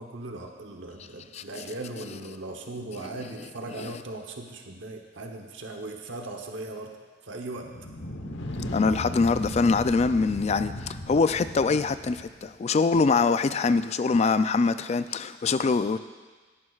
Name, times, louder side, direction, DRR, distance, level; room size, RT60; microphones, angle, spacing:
voice 1, 0.0-7.0 7.2-7.7, right 2 dB, 80° right, 3 dB, 0.9 m, -38 dB
voice 2, 1.3-1.6 3.8-3.9 8.7-16.0, left 4 dB, 35° left, 12 dB, 0.3 m, -24 dB
sound 1, 7.6-12.5, left 1 dB, 75° left, 1.0 m, -36 dB
17.0 x 11.0 x 2.4 m, 1.4 s
head